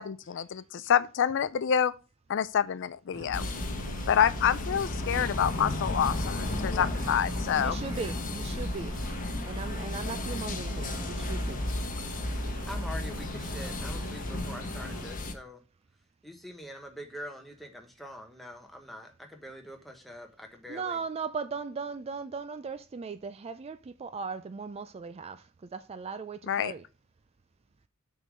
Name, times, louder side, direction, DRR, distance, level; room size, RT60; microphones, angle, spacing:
voice 1, 0.0-1.9 2.3-3.4 4.1-7.8 26.5-26.7, left 8 dB, 55° left, 0.4 m, -27 dB
sound 1, 3.1-15.1, right 2 dB, 65° right, 0.8 m, -44 dB
sound 2, 3.3-15.3, left 2 dB, 40° left, 1.0 m, -34 dB
voice 2, 7.6-8.9 9.4-11.6 20.7-26.8, right 5 dB, 30° right, 0.3 m, -38 dB
voice 3, 12.4-15.6 16.2-21.0, equal, ahead, 1.2 m, -44 dB
6.6 x 3.8 x 6.2 m
head